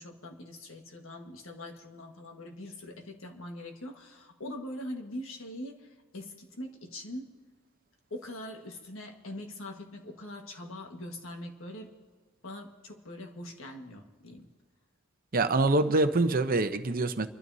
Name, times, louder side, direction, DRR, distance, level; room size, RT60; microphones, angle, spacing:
voice 1, 0.0-7.3 8.1-11.9 12.4-14.5, left 1 dB, 75° left, 3 dB, 1.5 m, -42 dB
voice 2, 15.3-17.3, right 2 dB, 45° right, 9 dB, 0.7 m, -25 dB
29.5 x 12.5 x 2.7 m, 1.5 s
head